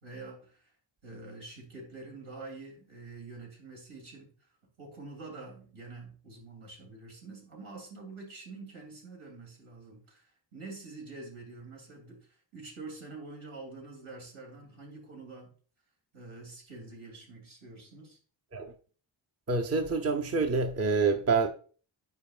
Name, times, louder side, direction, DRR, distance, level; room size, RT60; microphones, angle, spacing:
voice 1, 0.0-0.7 1.0-4.5 4.8-15.5 16.1-18.2, right 3 dB, 85° right, 2.9 m, -46 dB
voice 2, 19.5-21.5, right 4 dB, 30° right, 0.7 m, -27 dB
9.3 x 5.0 x 2.4 m
wide cardioid pair, 105°, 48 cm